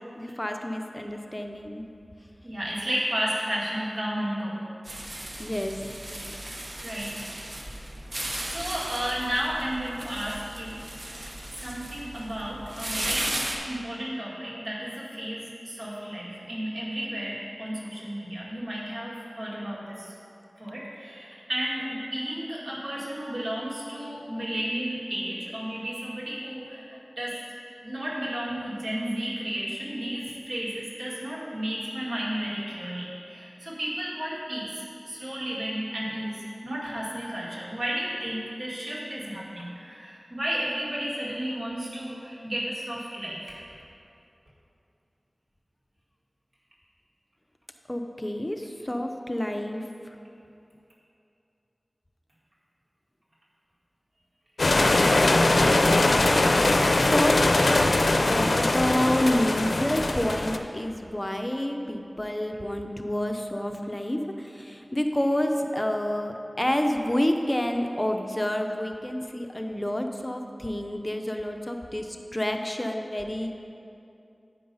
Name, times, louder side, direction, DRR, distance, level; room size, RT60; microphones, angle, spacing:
voice 1, 0.2-1.8 5.4-5.9 47.9-49.8 56.9-57.4 58.3-73.6, left 1 dB, 25° left, 4 dB, 0.6 m, -28 dB
voice 2, 2.4-4.6 6.8-7.3 8.4-20.1 20.6-26.9 27.2-27.4 27.8-43.6 56.0-56.1, equal, 75° right, -6 dB, 2.0 m, -33 dB
sound 1, 4.8-13.6, right 1 dB, 55° right, 0.9 m, -36 dB
sound 2, 54.6-60.6, left 2 dB, 85° left, 0.4 m, -21 dB
8.7 x 5.3 x 5.4 m, 2.7 s
wide cardioid pair, 40°, 0 cm